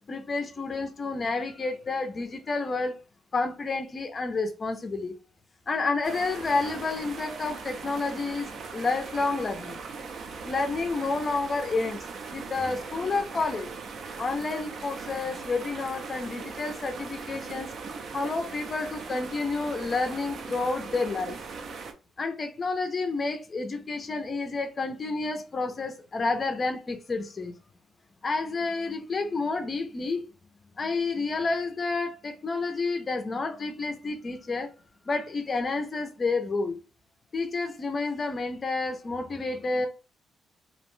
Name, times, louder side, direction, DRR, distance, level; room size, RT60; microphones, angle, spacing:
voice 1, 0.1-3.0 3.3-5.1 5.7-9.8 10.3-12.0 12.3-13.7 14.2-17.7 18.1-21.4 22.2-27.5 28.2-30.2 30.8-34.7 35.1-36.8 37.3-39.9, left 3 dB, 30° left, 0.4 m, -30 dB
sound 1, 6.0-21.9, right 5 dB, 55° right, 0.4 m, -40 dB
2.6 x 2.1 x 3.0 m
cardioid pair, 150°, 0 cm